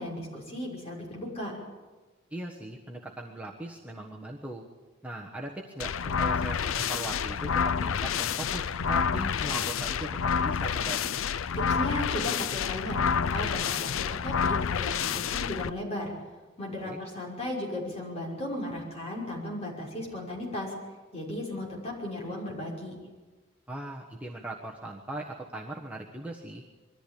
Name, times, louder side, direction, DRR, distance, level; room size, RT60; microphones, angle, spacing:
voice 1, 0.0-1.5 11.5-16.1 16.6-20.7 21.1-22.9, left 1 dB, 30° left, -2 dB, 6.0 m, -36 dB
voice 2, 2.3-4.6 5.0-10.1 10.4-11.1 16.8-17.0 23.7-26.6, right 1 dB, 5° right, -2 dB, 1.3 m, -39 dB
sound 1, 5.8-15.7, left 7 dB, 85° left, 0.5 m, -28 dB
22.5 x 14.0 x 8.5 m, 1.3 s
head